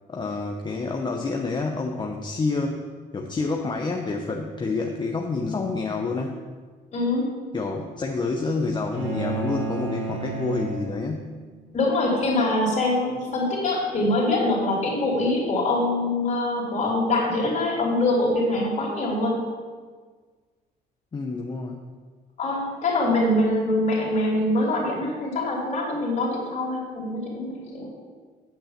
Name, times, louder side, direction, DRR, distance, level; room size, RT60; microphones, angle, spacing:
voice 1, 0.1-2.8 3.1-6.4 7.5-11.3 21.1-21.8, left 3 dB, 25° left, 2 dB, 0.8 m, -28 dB
voice 2, 6.9-7.3 11.7-19.4 22.4-27.9, left 2 dB, 45° left, -3 dB, 3.4 m, -24 dB
sound 1, 8.9-11.5, right 3 dB, 80° right, 2.4 m, -31 dB
8.9 x 5.6 x 7.4 m, 1.5 s
cardioid pair, 110°, 17 cm